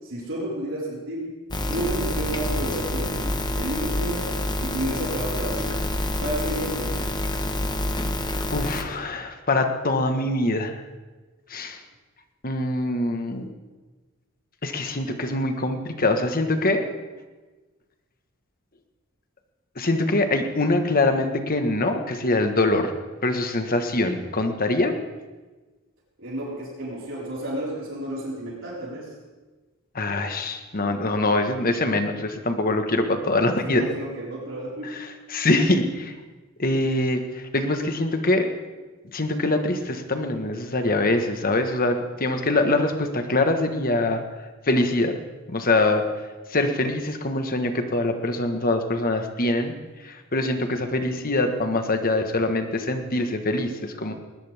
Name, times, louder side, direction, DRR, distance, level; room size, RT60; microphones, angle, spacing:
voice 1, 0.0-1.3 1.7-4.3 4.6-5.8 6.2-7.1 26.2-29.1 33.6-35.0 50.6-50.8, right 1 dB, 60° right, -5 dB, 4.9 m, -31 dB
sound 1, 1.5-8.8, left 1 dB, 20° left, 1.2 m, -27 dB
voice 2, 8.5-10.7 11.5-11.8 12.4-13.5 14.6-16.8 19.7-22.9 23.2-24.9 29.9-33.8 34.8-36.1 36.6-38.5 39.1-44.2 44.7-45.2 45.5-46.0 46.5-49.7 50.0-54.1, left 2 dB, 45° left, 6 dB, 1.5 m, -24 dB
20.0 x 19.5 x 3.6 m, 1.3 s
head